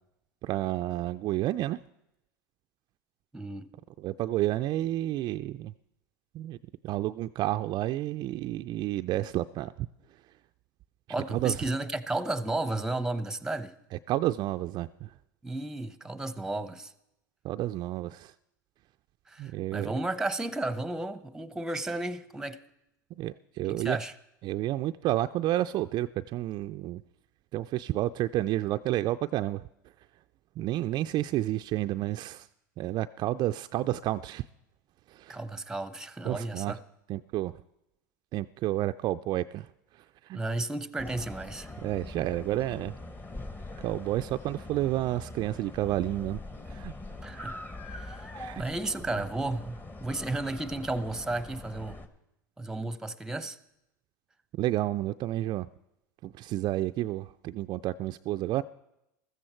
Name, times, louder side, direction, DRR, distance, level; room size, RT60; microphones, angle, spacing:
voice 1, 0.4-1.8 4.0-5.7 6.3-6.6 6.8-9.9 11.3-11.6 14.1-15.1 17.4-18.3 19.4-19.9 23.2-24.0 24.4-27.0 27.5-29.7 30.6-32.5 32.8-34.4 35.1-35.4 36.2-36.7 37.1-37.6 38.3-39.7 39.9-40.4 41.8-42.9 43.8-46.4 46.7-46.9 48.3-48.6 54.5-55.7 56.2-58.6, right 14 dB, 45° right, 0.4 m, -30 dB
voice 2, 3.3-3.7 11.1-13.7 15.4-16.9 19.3-22.6 23.7-24.1 35.3-36.8 40.3-41.7 47.2-47.6 47.9-48.3 48.5-52.0 52.6-53.6, right 2 dB, 5° right, 0.8 m, -33 dB
sound 1, 41.0-52.1, left 2 dB, 20° left, 1.2 m, -43 dB
15.0 x 14.0 x 4.4 m
hypercardioid pair, 95°, 10 cm